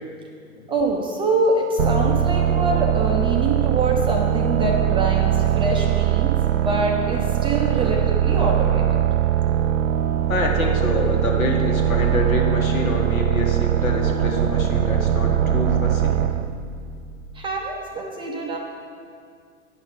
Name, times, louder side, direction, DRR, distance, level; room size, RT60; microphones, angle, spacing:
voice 1, 0.7-9.0 17.3-18.6, right 2 dB, 15° right, 0 dB, 0.4 m, -25 dB
sound 1, 1.8-16.5, right 10 dB, 70° right, 0.6 m, -21 dB
voice 2, 10.3-16.2, left 2 dB, 85° left, 1 dB, 1.6 m, -26 dB
9.5 x 5.5 x 5.2 m, 2.3 s
hypercardioid pair, 120°, 41 cm